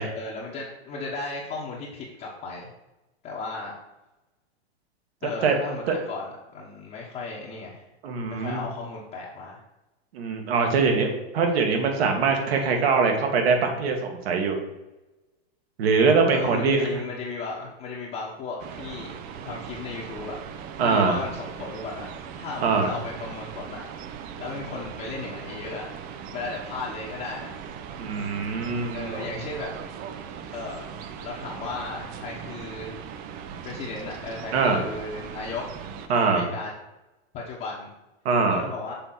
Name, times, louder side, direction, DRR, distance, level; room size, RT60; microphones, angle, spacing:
voice 1, 0.1-2.7 3.2-3.7 5.2-7.9 8.3-9.6 16.3-19.1 19.4-20.3 20.8-22.1 22.4-23.8 24.4-27.6 28.9-29.7 30.5-30.9 31.2-33.0 33.6-35.6 36.1-36.7 37.3-37.9 38.5-38.9, left 3 dB, 30° left, -5 dB, 1.2 m, -35 dB
voice 2, 8.0-8.6 10.1-14.6 15.8-16.8 20.8-21.2 22.6-22.9 28.0-29.2 34.5-34.8 36.1-36.5 38.3-38.6, right 4 dB, 65° right, 3 dB, 1.8 m, -23 dB
sound 1, 18.6-36.1, right 7 dB, 30° right, 0.5 m, -39 dB
6.8 x 3.2 x 5.8 m, 1.0 s
hypercardioid pair, 140°, 33 cm